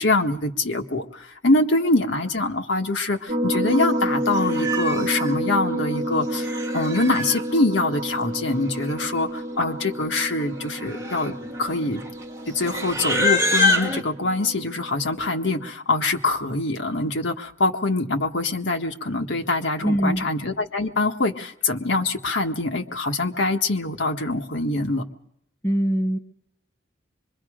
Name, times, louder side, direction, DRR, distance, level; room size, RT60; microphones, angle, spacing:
voice 1, 0.0-6.5 6.7-11.3 11.6-12.0 12.5-25.0, left 2 dB, 70° left, 3 dB, 1.7 m, -24 dB
sound 1, 3.3-15.7, right 1 dB, 35° right, 1.8 m, -30 dB
Livestock farm animals working animals, 3.8-4.0 4.3-5.3 6.2-7.4 8.5-8.6 8.8-9.2 9.5-9.8 10.4-14.0, left 2 dB, 15° right, 1.8 m, -26 dB
voice 2, 19.8-20.3 25.6-26.2, equal, 15° left, 4 dB, 1.2 m, -22 dB
25.0 x 22.5 x 5.1 m, 0.74 s
head